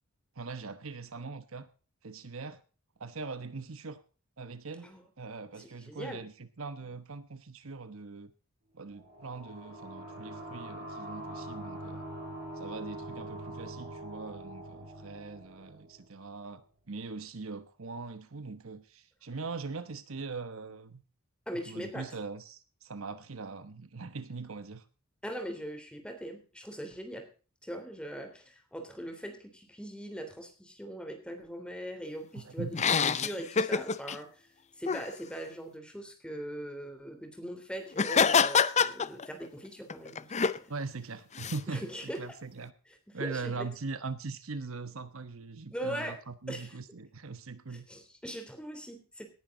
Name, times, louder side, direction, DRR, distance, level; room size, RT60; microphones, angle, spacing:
voice 1, 0.4-1.7 2.0-2.6 3.0-4.0 4.4-4.9 5.2-8.3 8.7-12.0 12.6-21.0 21.7-24.8 32.3-32.7 40.7-42.7 43.1-47.9, right 4 dB, 65° right, 12 dB, 1.1 m, -41 dB
voice 2, 5.6-6.2 21.5-22.1 25.2-27.3 27.6-32.8 33.1-34.5 34.8-40.7 41.7-42.2 42.9-43.7 45.7-46.2 46.5-46.7 47.7-49.3, equal, 5° left, 6 dB, 3.3 m, -41 dB
sound 1, 8.9-16.3, right 1 dB, 50° right, 7.1 m, -43 dB
sound 2, 32.7-34.2 34.9-35.1 37.9-39.5 39.9-40.6 41.4-41.6, left 6 dB, 30° left, 0.6 m, -26 dB
18.5 x 10.5 x 3.9 m, 0.37 s
head